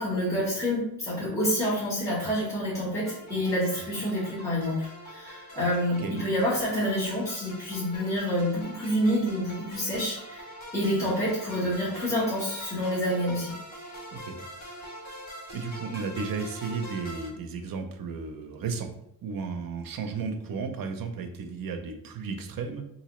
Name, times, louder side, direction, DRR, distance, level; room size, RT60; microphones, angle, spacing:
voice 1, 0.0-10.4 10.7-13.5, equal, 10° left, -10 dB, 1.2 m, -28 dB
sound 1, 3.0-17.3, equal, 50° left, 1.4 m, -44 dB
voice 2, 14.1-14.4 15.5-18.9 19.2-22.8, right 5 dB, 70° right, 6 dB, 0.6 m, -34 dB
3.9 x 2.6 x 3.0 m, 0.79 s
wide cardioid pair, 170°, 36 cm